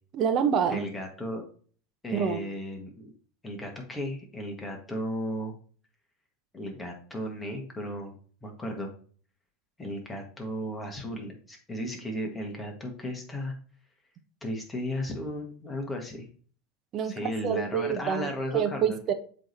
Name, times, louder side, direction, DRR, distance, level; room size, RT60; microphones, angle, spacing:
voice 1, 0.1-0.9 2.1-2.4 16.9-19.1, right 8 dB, 45° right, 8 dB, 1.0 m, -27 dB
voice 2, 0.7-1.5 2.0-3.1 3.4-5.6 6.5-8.2 8.4-8.9 9.8-13.5 14.4-16.3 17.0-19.0, equal, 15° left, 2 dB, 1.8 m, -35 dB
7.5 x 3.5 x 4.1 m, 0.43 s
hypercardioid pair, 105°, 0 cm